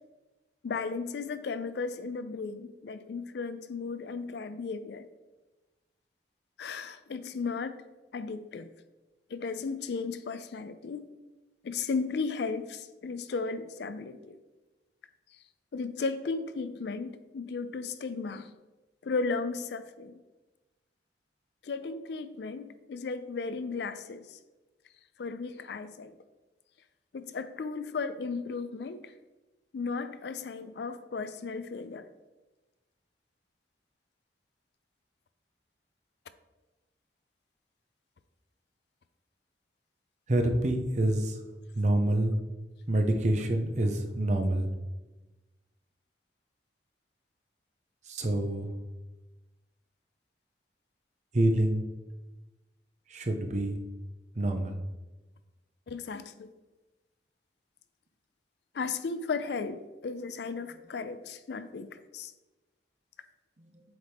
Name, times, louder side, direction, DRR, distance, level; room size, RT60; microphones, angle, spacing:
voice 1, 0.6-5.1 6.6-7.8 8.1-8.7 9.3-11.1 11.6-14.4 15.7-18.5 19.0-20.1 21.6-24.4 25.2-26.1 27.1-29.1 29.7-32.1 55.9-56.5 58.7-62.3, left 4 dB, 60° left, 12 dB, 0.4 m, -35 dB
voice 2, 40.3-41.4 41.7-42.4 42.9-44.7 48.1-48.7 51.3-51.9 53.1-53.8 54.4-54.8, right 1 dB, 40° right, 5 dB, 0.7 m, -27 dB
7.8 x 4.2 x 3.5 m, 1.1 s
head